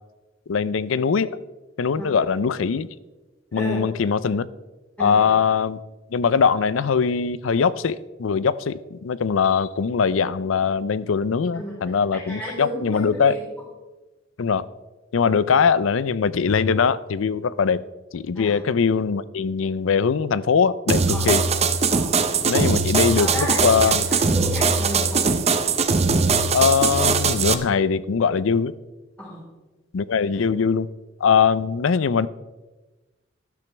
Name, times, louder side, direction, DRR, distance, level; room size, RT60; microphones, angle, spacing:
voice 1, 0.5-1.3 1.8-2.9 3.5-4.5 5.0-5.8 6.1-13.4 14.4-14.6 15.1-17.8 18.1-21.4 22.4-24.1 26.5-28.7 29.9-30.9 31.2-32.3, left 6 dB, 90° left, 17 dB, 0.5 m, -21 dB
voice 2, 5.0-5.3 11.5-13.4 15.2-15.3 18.3-18.6 21.1-21.3 21.9-22.1 22.5-22.8 23.1-25.4 29.2-29.5, equal, 10° left, -8 dB, 4.0 m, -33 dB
sound 1, 20.9-27.5, right 4 dB, 35° right, 0.7 m, -21 dB
12.0 x 12.0 x 3.3 m, 1.2 s
head